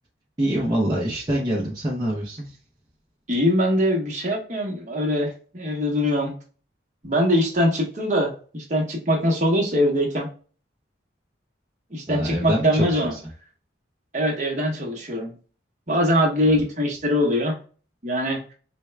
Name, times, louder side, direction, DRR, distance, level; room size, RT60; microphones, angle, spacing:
voice 1, 0.4-2.6 12.1-13.2, right 1 dB, 20° right, -4 dB, 0.7 m, -25 dB
voice 2, 3.3-6.3 7.0-10.3 11.9-13.1 14.1-15.3 15.9-17.6 18.0-18.5, equal, 40° right, 0 dB, 1.0 m, -22 dB
4.5 x 2.3 x 3.2 m, 0.38 s
head